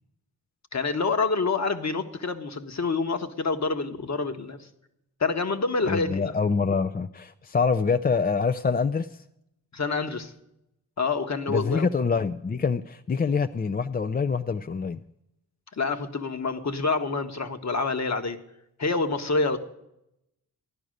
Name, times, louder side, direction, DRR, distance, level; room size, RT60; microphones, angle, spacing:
voice 1, 0.7-4.7 5.2-6.3 9.7-10.3 11.0-11.9 15.7-18.4 18.8-19.6, left 4 dB, 40° left, 8 dB, 1.5 m, -27 dB
voice 2, 5.8-9.2 11.5-15.0, left 5 dB, 20° left, 10 dB, 0.5 m, -25 dB
14.0 x 10.5 x 6.5 m, 0.84 s
supercardioid pair, 50°, 42 cm